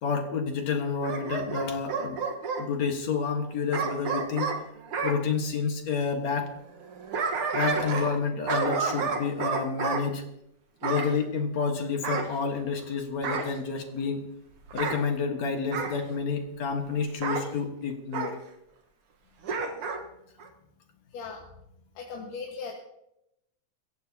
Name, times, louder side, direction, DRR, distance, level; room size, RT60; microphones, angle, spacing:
voice 1, 0.0-2.2 2.6-4.6 5.0-6.5 7.5-10.2 10.8-14.2 14.7-18.3, left 5 dB, 60° left, 4 dB, 2.6 m, -29 dB
Bark / Growling, 1.0-2.7 3.7-5.2 6.8-8.2 8.5-10.0 10.8-11.1 12.0-12.8 13.2-13.6 14.7-15.0 15.7-16.0 17.2-17.5 18.1-18.4 19.4-20.0 20.4-20.5, right 5 dB, 50° right, 1.9 m, -30 dB
voice 2, 21.1-21.4 22.0-22.7, left 5 dB, 80° left, -1 dB, 3.2 m, -38 dB
22.5 x 15.5 x 2.9 m, 0.82 s
omnidirectional pair, 3.7 m